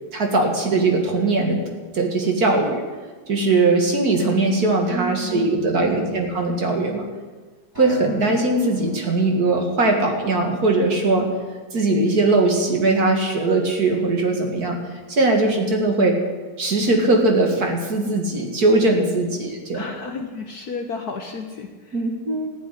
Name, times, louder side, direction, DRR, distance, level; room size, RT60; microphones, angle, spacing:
voice 1, 0.1-1.6 1.9-2.8 3.3-7.1 7.8-11.3 11.7-16.2 16.6-19.8 21.9-22.5, right 2 dB, 45° right, 2 dB, 2.3 m, -20 dB
voice 2, 4.9-6.3 19.7-22.0, left 3 dB, 55° left, 4 dB, 1.3 m, -33 dB
Acoustic guitar, 7.7-12.2 12.8-12.9, left 5 dB, 10° right, 5.0 m, -42 dB
14.5 x 7.8 x 9.9 m, 1.4 s
omnidirectional pair, 2.4 m